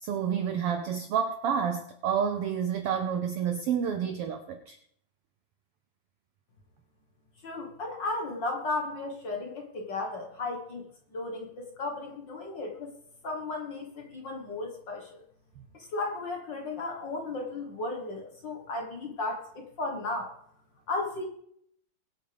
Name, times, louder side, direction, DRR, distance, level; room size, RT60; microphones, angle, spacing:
voice 1, 0.0-4.8, right 7 dB, 90° right, 1.2 m, -29 dB
voice 2, 7.4-10.8 11.1-12.9 13.2-15.2 15.7-20.3 20.9-21.3, left 2 dB, 45° left, 1.7 m, -35 dB
22.0 x 8.4 x 3.4 m
omnidirectional pair, 3.6 m